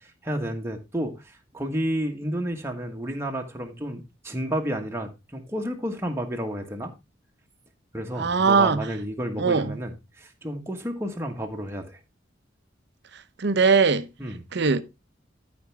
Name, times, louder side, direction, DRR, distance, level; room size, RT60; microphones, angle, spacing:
voice 1, 0.2-6.9 7.9-12.0 14.2-14.4, equal, 15° right, 1.4 m, -31 dB
voice 2, 8.2-8.9 9.4-9.7 13.4-14.0 14.5-14.8, right 5 dB, 65° right, 0.8 m, -20 dB
13.5 x 5.2 x 3.4 m
head